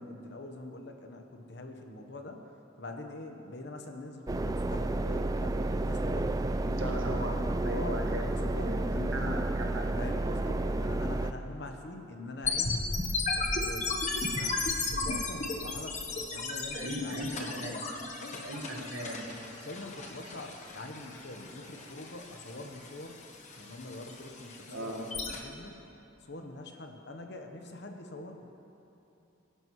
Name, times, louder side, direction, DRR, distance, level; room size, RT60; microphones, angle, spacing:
voice 1, 0.0-2.5 2.8-6.4 7.7-8.8 10.0-12.9 13.3-17.9 18.2-18.9 19.6-23.2 23.6-25.8 26.2-28.5, left 2 dB, 60° left, 3 dB, 1.1 m, -44 dB
sound 1, 4.3-11.3, right 2 dB, 20° right, 0.3 m, -31 dB
voice 2, 6.6-7.4 7.6-8.2 8.6-9.8 16.7-17.8 18.4-19.3 24.7-25.1, equal, 80° right, 0 dB, 1.7 m, -37 dB
sound 2, 12.4-25.4, left 3 dB, 35° left, 1.2 m, -35 dB
23.0 x 11.5 x 3.2 m, 2.9 s
head